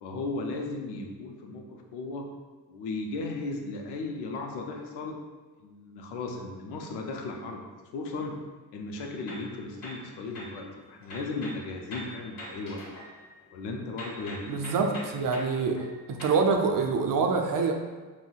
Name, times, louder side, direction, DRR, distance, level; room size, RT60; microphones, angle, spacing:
voice 1, 0.0-2.3 2.7-5.2 5.6-7.6 7.9-8.4 8.7-12.8 13.5-15.0, left 3 dB, 75° left, 2 dB, 0.6 m, -36 dB
sound 1, 9.0-10.6 11.0-13.6 14.0-16.4, left 1 dB, 55° left, 1.3 m, -44 dB
voice 2, 14.5-17.7, right 4 dB, 50° right, 4 dB, 0.5 m, -26 dB
3.7 x 2.1 x 2.3 m, 1.3 s
supercardioid pair, 55°, 42 cm